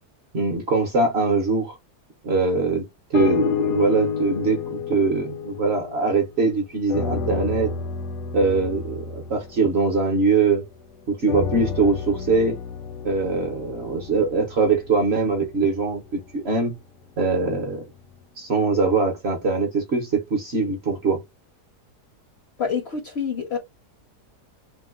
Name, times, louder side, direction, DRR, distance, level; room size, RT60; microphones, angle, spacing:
voice 1, 0.3-1.8 2.2-2.8 3.1-7.7 8.3-10.6 11.1-12.6 13.0-16.7 17.2-17.8 18.4-21.2, right 4 dB, 55° right, 0.8 m, -22 dB
sound 1, 3.1-6.5 6.9-10.6 11.3-15.5 16.1-16.2, left 6 dB, 80° left, 1.4 m, -30 dB
voice 2, 22.6-23.6, left 6 dB, 60° left, 0.7 m, -27 dB
2.9 x 2.1 x 3.5 m
omnidirectional pair, 1.7 m